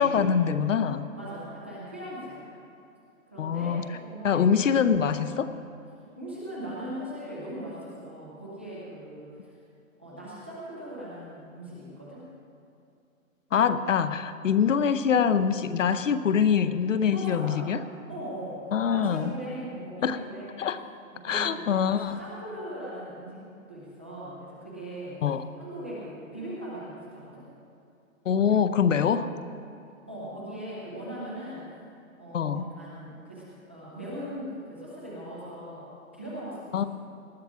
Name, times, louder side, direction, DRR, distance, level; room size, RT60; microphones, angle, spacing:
voice 1, 0.0-1.1 3.4-3.9 4.2-5.5 13.5-17.8 18.7-19.3 20.0-20.2 20.6-20.8 21.2-22.2 25.2-25.5 28.3-29.3 32.3-32.7 36.7-36.8, left 7 dB, 65° left, 11 dB, 0.8 m, -24 dB
voice 2, 1.2-2.5 3.3-4.5 6.2-9.5 10.0-12.3 17.1-17.7 18.1-20.6 21.1-23.4 23.7-25.2 25.6-27.5 30.1-31.7 32.2-36.8, equal, 10° right, -8 dB, 0.6 m, -39 dB
19.0 x 12.0 x 3.5 m, 2.5 s
hypercardioid pair, 175°, 41 cm